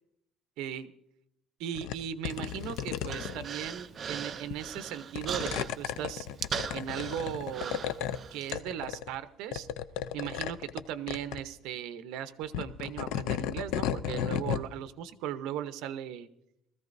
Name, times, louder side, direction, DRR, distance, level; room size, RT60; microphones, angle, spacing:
voice 1, 0.6-0.9 1.6-6.3 6.7-7.9 8.3-9.7 10.1-16.3, right 10 dB, 75° right, 12 dB, 0.8 m, -37 dB
sound 1, 1.8-2.0 2.2-3.7 4.5-4.8 5.2-8.2 8.5-9.2 9.5-10.8 11.1-11.4 12.4-14.7, left 10 dB, 80° left, 0.5 m, -34 dB
Human voice, 2.3-8.5, right 7 dB, 30° right, 0.5 m, -39 dB
20.0 x 14.5 x 2.6 m, 0.81 s
cardioid pair, 165°, 0 cm